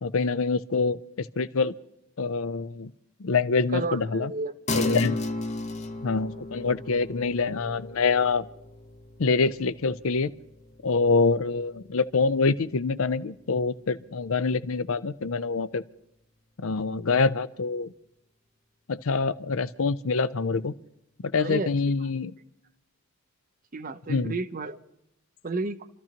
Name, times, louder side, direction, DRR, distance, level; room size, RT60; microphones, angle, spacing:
voice 1, 0.0-1.7 2.2-2.9 3.2-4.3 4.7-5.2 6.0-8.5 9.2-10.3 10.8-15.8 16.6-17.9 18.9-20.7 21.2-22.3 24.1-24.3, left 4 dB, 65° left, 13 dB, 0.6 m, -25 dB
voice 2, 3.7-4.5 21.4-21.7 23.7-24.8 25.4-25.8, right 3 dB, 40° right, 11 dB, 0.7 m, -31 dB
sound 1, 4.7-14.4, left 2 dB, 30° left, 0.8 m, -36 dB
29.0 x 13.5 x 2.9 m, 0.82 s
head